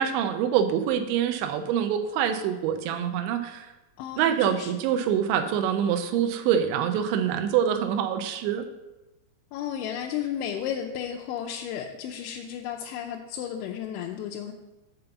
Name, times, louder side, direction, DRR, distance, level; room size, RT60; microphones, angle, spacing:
voice 1, 0.0-3.7 4.2-8.7, right 9 dB, 85° right, 7 dB, 3.0 m, -25 dB
voice 2, 4.0-4.7 9.5-14.5, left 9 dB, 85° left, -1 dB, 3.0 m, -33 dB
7.0 x 5.3 x 6.8 m, 1.0 s
omnidirectional pair, 5.3 m